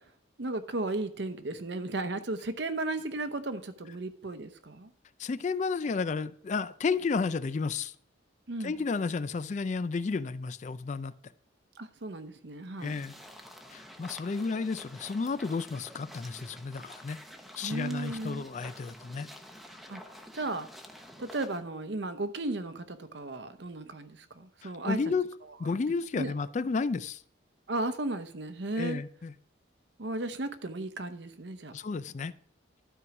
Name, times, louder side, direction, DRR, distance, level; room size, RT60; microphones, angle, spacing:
voice 1, 0.4-4.9 8.5-8.8 11.8-12.9 17.6-18.5 19.9-20.0 20.3-20.7 21.2-25.0 25.6-25.8 26.1-26.3 27.7-29.0 30.0-31.7, right 2 dB, 65° right, 10 dB, 0.8 m, -35 dB
voice 2, 5.2-7.9 8.6-11.1 12.8-13.2 13.7-17.2 17.6-19.3 24.6-25.3 25.6-27.2 28.8-29.3 31.7-32.3, left 4 dB, 40° left, 15 dB, 0.3 m, -32 dB
sound 1, 12.8-21.6, equal, ahead, 0.8 m, -49 dB
12.5 x 4.7 x 6.0 m, 0.62 s
head